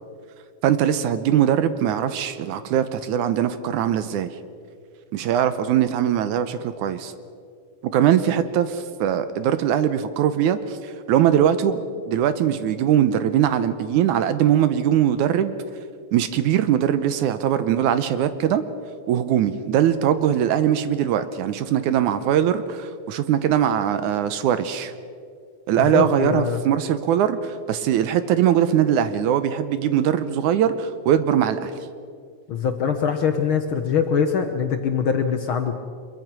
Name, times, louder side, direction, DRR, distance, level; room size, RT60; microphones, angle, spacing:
voice 1, 0.6-4.3 5.1-7.1 7.8-11.8 12.1-15.5 16.1-18.6 19.1-24.9 25.7-31.7, right 10 dB, 75° right, 12 dB, 2.2 m, -21 dB
voice 2, 25.8-26.6 32.5-35.8, left 6 dB, 65° left, 6 dB, 1.3 m, -23 dB
25.0 x 22.5 x 6.1 m, 2.2 s
omnidirectional pair, 3.6 m